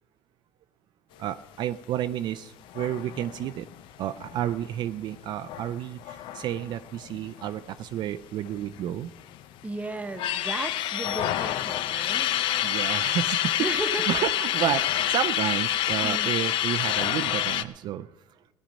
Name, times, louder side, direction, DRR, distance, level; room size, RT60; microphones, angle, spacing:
voice 1, 1.2-3.7 4.0-9.1 12.6-13.7 14.1-18.1, right 11 dB, 55° right, 10 dB, 0.5 m, -31 dB
sound 1, 2.7-7.8 8.1-8.2 8.5-9.4 9.9-17.6, left 12 dB, 65° left, 0.6 m, -28 dB
voice 2, 9.6-12.3 13.6-14.2 16.0-16.4, right 3 dB, 15° right, 8 dB, 1.0 m, -35 dB
18.0 x 10.0 x 5.2 m, 1.2 s
cardioid pair, 130°, 9 cm